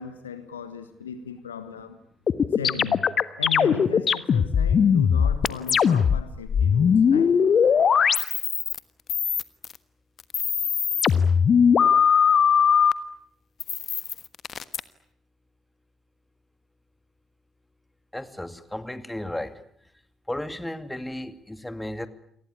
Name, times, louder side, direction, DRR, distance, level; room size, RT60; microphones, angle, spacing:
voice 1, 0.0-2.0 2.5-3.1 3.4-7.4, left 7 dB, 80° left, 12 dB, 1.4 m, -36 dB
sound 1, 2.3-6.2 6.5-8.8 9.1-9.8 10.2-12.9 13.6-14.8, left 7 dB, 40° left, 1.3 m, -20 dB
voice 2, 18.1-19.6 20.3-22.1, left 1 dB, 5° left, 10 dB, 2.5 m, -34 dB
29.0 x 23.5 x 8.5 m, 0.67 s
figure-of-eight pair, 45°, 0 cm